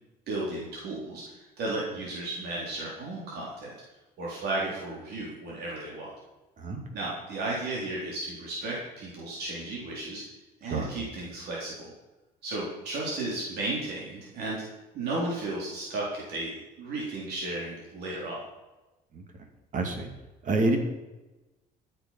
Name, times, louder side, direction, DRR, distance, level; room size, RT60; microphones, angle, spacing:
voice 1, 0.3-3.7 4.2-6.1 6.9-10.2 10.6-11.9 12.4-14.7 14.9-18.4, right 2 dB, 70° right, -4 dB, 3.7 m, -34 dB
voice 2, 19.7-20.1 20.4-20.8, right 2 dB, 50° right, 4 dB, 2.5 m, -27 dB
13.5 x 8.2 x 5.8 m, 1.1 s
cardioid pair, 110°, 17 cm